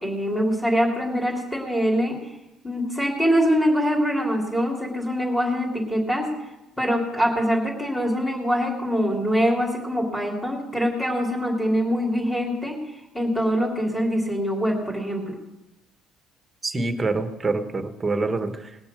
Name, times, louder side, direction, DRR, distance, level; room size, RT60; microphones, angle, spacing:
voice 1, 0.0-2.2 2.6-6.3 6.8-12.8 13.1-15.4, equal, 5° left, -2 dB, 3.0 m, -24 dB
voice 2, 16.6-18.8, right 3 dB, 15° right, 7 dB, 1.4 m, -26 dB
20.0 x 6.9 x 6.8 m, 0.93 s
cardioid pair, 130°, 0 cm